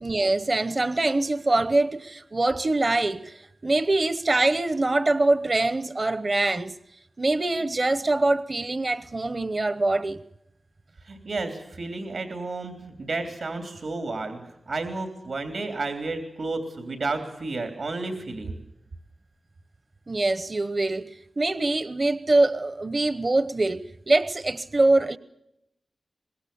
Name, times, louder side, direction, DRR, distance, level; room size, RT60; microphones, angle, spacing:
voice 1, 0.0-6.8 7.2-10.2 20.1-25.2, right 2 dB, 40° right, 0.8 m, -24 dB
voice 2, 11.0-18.6, right 3 dB, 85° right, 3.3 m, -32 dB
24.5 x 21.5 x 7.0 m
wide cardioid pair, 100°, 0 cm